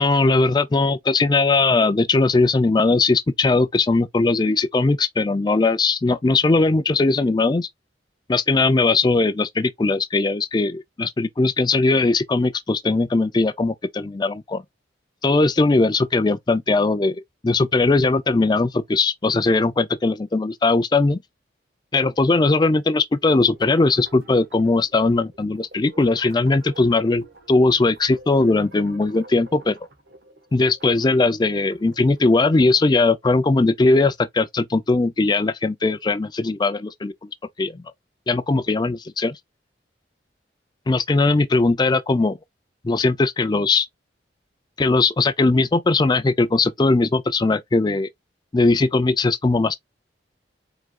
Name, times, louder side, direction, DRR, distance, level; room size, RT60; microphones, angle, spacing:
voice 1, 0.0-7.7 8.3-14.6 15.2-21.2 21.9-29.8 30.5-37.1 37.6-37.8 38.3-39.4 40.9-42.4 42.8-43.9 44.8-48.1 48.5-49.8, left 3 dB, 25° left, 0.4 m, -19 dB
sound 1, 23.3-32.9, right 1 dB, 60° right, 1.3 m, -48 dB
4.9 x 3.6 x 2.3 m
head